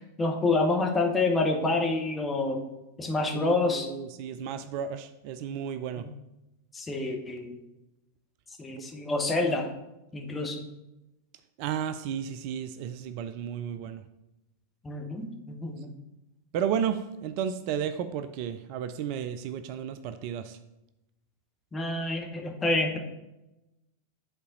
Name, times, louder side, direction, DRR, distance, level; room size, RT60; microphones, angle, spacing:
voice 1, 0.2-2.6 3.0-3.9 6.0-6.1 6.7-7.6 8.6-9.7 10.1-10.6 14.8-15.3 15.6-15.9 21.7-23.0, left 2 dB, 15° left, 2 dB, 1.2 m, -27 dB
voice 2, 3.3-6.1 8.7-8.8 11.6-14.0 16.5-20.6, right 8 dB, 45° right, 11 dB, 0.4 m, -33 dB
10.0 x 4.0 x 3.9 m, 0.94 s
figure-of-eight pair, 90°, 0 cm